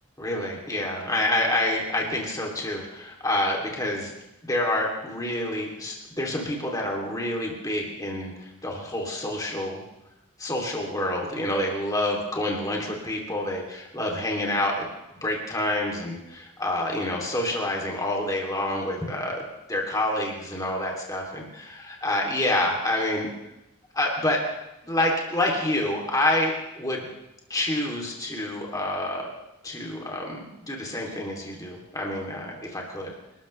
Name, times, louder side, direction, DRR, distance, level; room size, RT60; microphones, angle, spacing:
voice 1, 0.2-4.1 4.4-9.8 10.4-14.9 15.2-19.4 19.7-23.3 23.9-24.4 24.8-27.0 27.5-29.3 29.6-33.1, left 1 dB, 15° left, -1 dB, 2.9 m, -28 dB
27.5 x 13.0 x 3.3 m, 0.92 s
head